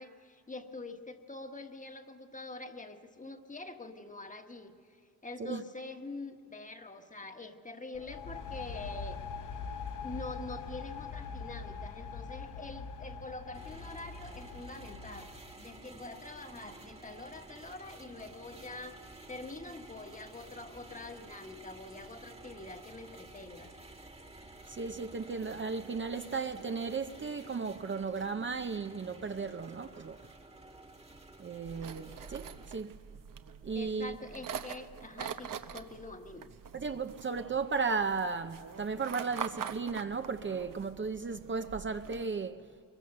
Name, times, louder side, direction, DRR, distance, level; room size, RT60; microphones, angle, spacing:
voice 1, 0.0-4.7 5.2-9.2 10.0-23.7 33.7-36.5, left 2 dB, 20° left, 1.4 m, -45 dB
sound 1, 7.9-15.7, left 5 dB, 65° left, 1.1 m, -43 dB
sound 2, 13.5-32.7, right 2 dB, 20° right, 1.5 m, -52 dB
voice 2, 24.7-30.2 31.4-33.0 33.6-34.2 36.7-42.6, right 4 dB, 35° right, 0.7 m, -35 dB
sound 3, 31.6-42.2, right 8 dB, 70° right, 1.0 m, -44 dB
24.0 x 22.5 x 6.7 m
cardioid pair, 100°, 34 cm